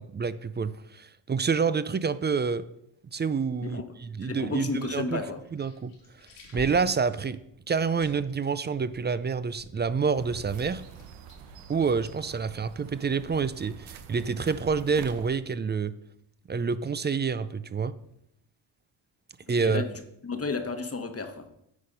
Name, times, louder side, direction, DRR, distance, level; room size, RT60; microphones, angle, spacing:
voice 1, 0.2-2.6 3.1-5.2 5.5-5.9 6.5-7.4 7.7-10.8 11.7-15.9 16.5-17.9 19.5-19.8, right 5 dB, 25° right, 15 dB, 0.4 m, -28 dB
voice 2, 4.2-5.4 19.6-19.9 20.2-21.5, left 4 dB, 30° left, 7 dB, 1.2 m, -32 dB
sound 1, 5.0-12.4, left 3 dB, 85° left, 2.7 m, -51 dB
sound 2, 10.2-15.3, right 7 dB, 85° right, 0.8 m, -46 dB
9.7 x 4.1 x 5.1 m, 0.74 s
supercardioid pair, 60°, 49 cm